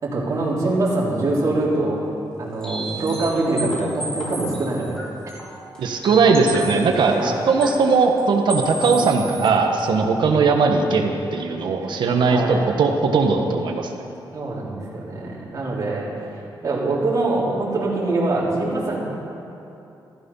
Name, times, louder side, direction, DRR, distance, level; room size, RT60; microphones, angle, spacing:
voice 1, 0.0-2.1 2.4-5.1 6.0-6.1 7.0-7.4 11.8-12.0 12.3-12.5 14.3-16.1 16.6-19.0, right 2 dB, 40° right, -6 dB, 3.7 m, -24 dB
sound 1, 2.6-7.0 7.6-7.8 8.2-8.3 8.5-9.5 9.8-9.9, right 2 dB, 10° left, 2.3 m, -32 dB
voice 2, 5.8-13.9, right 4 dB, 75° right, 3 dB, 1.4 m, -19 dB
14.5 x 14.0 x 5.7 m, 2.8 s
wide cardioid pair, 155°, 8 cm